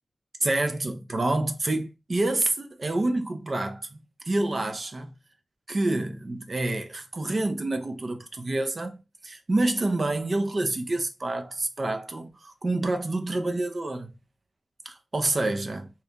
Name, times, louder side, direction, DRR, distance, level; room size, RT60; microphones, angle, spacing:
voice 1, 0.4-4.0 4.3-5.1 5.7-14.1 14.8-15.9, right 2 dB, 50° right, 0.6 m, -28 dB
2.8 x 2.4 x 3.4 m
cardioid pair, 55°, 0 cm